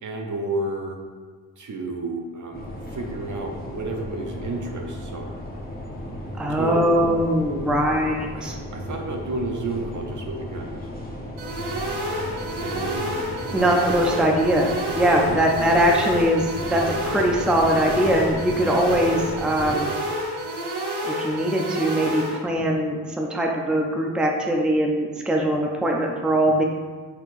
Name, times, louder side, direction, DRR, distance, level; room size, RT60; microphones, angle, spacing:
voice 1, 0.0-1.0 1.6-5.4 6.6-6.8 8.3-10.8 12.6-13.1 13.5-13.7 15.2-15.7, right 2 dB, 45° right, 2 dB, 0.7 m, -31 dB
sound 1, 2.5-19.8, equal, 20° left, 0.9 m, -35 dB
voice 2, 6.4-8.6 13.5-19.9 21.0-26.6, right 1 dB, ahead, 0 dB, 0.5 m, -21 dB
sound 2, 11.4-22.4, equal, 75° right, 1.1 m, -29 dB
4.4 x 3.8 x 2.6 m, 1.5 s
supercardioid pair, 50°, 41 cm